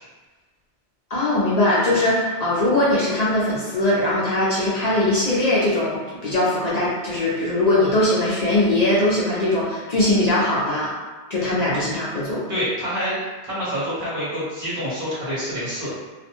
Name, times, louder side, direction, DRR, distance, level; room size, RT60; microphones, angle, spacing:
voice 1, 1.1-10.9 11.3-12.4, left 1 dB, 50° left, -8 dB, 0.5 m, -20 dB
voice 2, 12.5-13.2 13.4-15.9, equal, 50° right, -9 dB, 1.1 m, -27 dB
2.4 x 2.1 x 2.8 m, 1.3 s
omnidirectional pair, 1.2 m